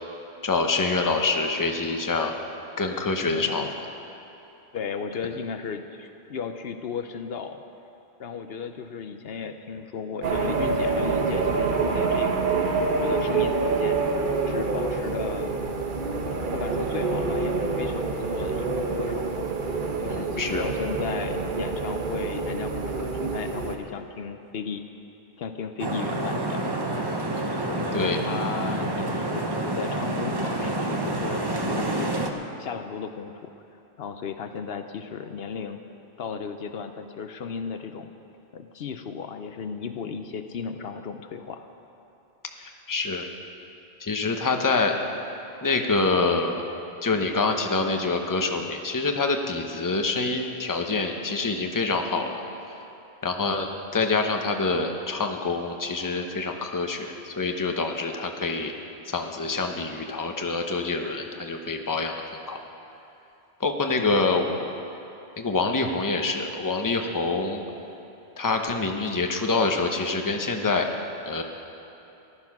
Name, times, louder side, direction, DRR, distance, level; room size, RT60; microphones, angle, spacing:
voice 1, 0.4-2.4 2.8-3.7 20.1-20.6 27.9-28.2 42.9-43.3 44.0-44.9 45.6-46.7 47.0-52.3 53.2-58.7 59.1-62.1 62.5-62.6 63.6-64.5 65.4-67.6 68.4-70.9 71.2-71.4, left 3 dB, 20° left, 4 dB, 0.9 m, -26 dB
voice 2, 3.3-3.7 4.7-7.6 8.2-14.0 14.4-15.8 16.3-19.2 20.0-24.8 25.4-26.7 27.5-32.1 32.6-33.3 34.0-35.8 36.2-38.1 38.5-41.7 64.0-64.1 64.5-64.7, left 6 dB, 70° left, 8 dB, 0.9 m, -35 dB
sound 1, 10.2-23.8, right 4 dB, 55° right, 1.1 m, -26 dB
sound 2, 25.8-32.3, right 2 dB, 25° right, 0.8 m, -28 dB
15.0 x 12.0 x 6.0 m, 3.0 s
omnidirectional pair, 1.0 m